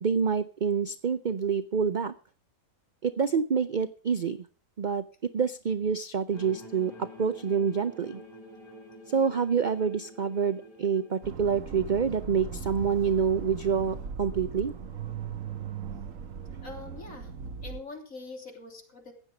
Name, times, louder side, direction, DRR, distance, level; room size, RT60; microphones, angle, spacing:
voice 1, 0.0-2.1 3.0-4.5 4.8-8.2 9.1-14.7, right 6 dB, 45° right, 12 dB, 0.6 m, -27 dB
sound 1, 6.3-11.4, equal, 30° left, 7.5 m, -48 dB
Accelerating revving vroom, 11.2-17.8, right 6 dB, 65° right, 1.5 m, -39 dB
voice 2, 16.6-17.3 17.6-19.1, left 3 dB, 60° left, 2 dB, 3.5 m, -43 dB
15.5 x 10.0 x 4.9 m, 0.39 s
omnidirectional pair, 1.5 m